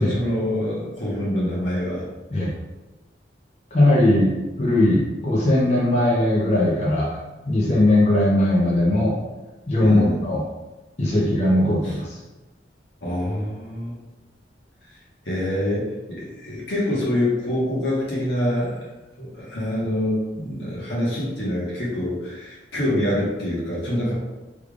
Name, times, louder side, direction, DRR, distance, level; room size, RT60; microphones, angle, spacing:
voice 1, 0.0-2.1 9.8-10.2 11.8-11.9 13.0-13.9 15.2-18.8 19.2-24.1, left 1 dB, 85° left, -6 dB, 1.3 m, -25 dB
voice 2, 3.7-4.3 4.6-7.1 7.5-9.2 9.7-10.4 11.0-12.2, left 1 dB, 40° left, -5 dB, 0.6 m, -19 dB
3.3 x 3.3 x 2.4 m, 1.1 s
head